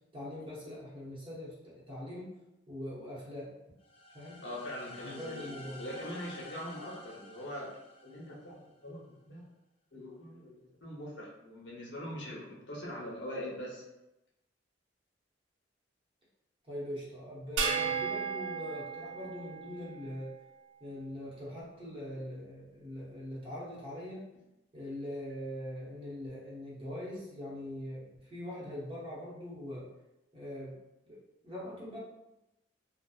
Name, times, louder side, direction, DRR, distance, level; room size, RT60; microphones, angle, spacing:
voice 1, 0.1-2.4 2.7-3.6 4.1-4.4 5.0-5.8 16.6-20.3 20.8-24.2 24.7-29.9 30.3-30.7 31.1-32.0, left 1 dB, 30° right, -7 dB, 0.8 m, -42 dB
sound 1, 3.8-8.6, left 1 dB, 30° left, 0.4 m, -51 dB
voice 2, 4.4-5.5 5.8-7.7 8.0-9.0 9.3-9.4 9.9-13.8, left 1 dB, 70° left, -5 dB, 0.8 m, -42 dB
sound 2, 17.6-20.1, right 5 dB, 80° right, 0.4 m, -34 dB
2.7 x 2.1 x 2.3 m, 0.93 s
head